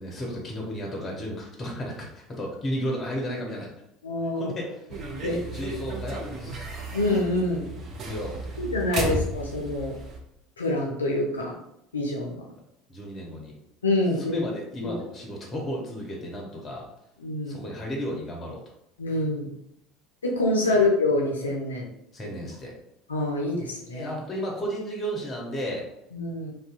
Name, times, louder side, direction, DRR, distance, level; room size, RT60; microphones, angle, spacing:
voice 1, 0.0-3.7 4.4-4.8 5.2-6.7 8.0-8.6 12.9-13.5 14.2-16.9 17.5-18.6 22.1-22.7 23.9-25.8, equal, 25° left, -1 dB, 0.8 m, -33 dB
voice 2, 4.0-4.5 5.2-5.4 6.9-7.6 8.6-9.9 10.6-11.5 11.9-12.4 13.8-14.4 14.8-14.9 17.2-17.6 19.0-19.5 20.2-21.9 23.1-24.1 26.1-26.5, left 2 dB, 80° left, -1 dB, 0.4 m, -26 dB
sound 1, 4.9-10.2, right 2 dB, 45° right, 0.5 m, -34 dB
2.6 x 2.1 x 2.4 m, 0.78 s
figure-of-eight pair, 65°, 0 cm